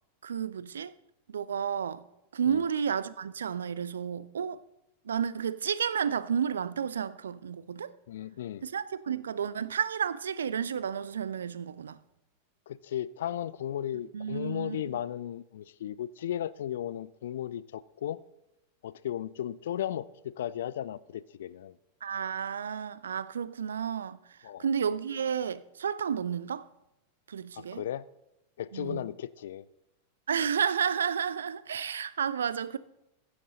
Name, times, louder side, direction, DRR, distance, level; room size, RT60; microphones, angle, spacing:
voice 1, 0.2-0.9 1.3-2.0 2.3-4.6 5.1-7.9 8.6-12.0 14.1-14.8 22.0-24.2 24.6-26.7 27.3-27.8 28.7-29.0 30.3-32.8, right 7 dB, 65° right, 0.4 m, -31 dB
voice 2, 8.1-8.6 12.7-18.2 18.8-21.7 24.4-24.7 27.6-28.1 28.6-29.6, left 11 dB, 60° left, 0.4 m, -35 dB
15.5 x 6.5 x 3.9 m
figure-of-eight pair, 90°, 0 cm